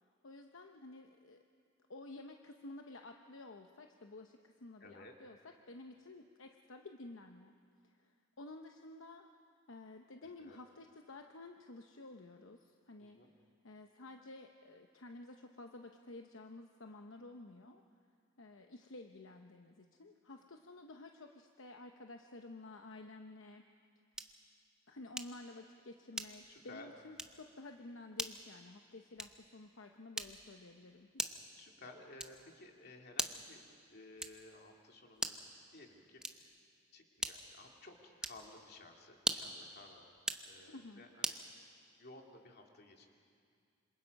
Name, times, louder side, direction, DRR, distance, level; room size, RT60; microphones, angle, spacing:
voice 1, 0.2-1.4 1.9-5.4 5.7-7.5 7.8-9.3 9.7-13.2 13.6-17.8 18.4-23.7 24.9-31.1 40.7-41.0, left 2 dB, 70° left, 4 dB, 0.9 m, -52 dB
voice 2, 4.8-5.1 10.2-10.6 13.0-13.4 26.5-26.9 31.5-33.6 33.9-35.4 35.7-36.5 36.9-41.3 42.0-43.1, left 2 dB, 50° left, 1 dB, 2.5 m, -56 dB
sound 1, 24.1-24.5 25.2-25.5 26.1-26.6 27.1-27.4 28.1-28.4 29.1-29.5 30.1-30.6 31.2-31.5 32.2-32.5 33.1-33.6 34.2-34.5 35.1-35.5 36.2-36.6 37.2-37.6 38.2-38.5 39.2-39.6 40.2-40.5 41.2-41.5, right 1 dB, 5° right, 0.8 m, -40 dB
27.0 x 26.5 x 5.3 m, 2.3 s
head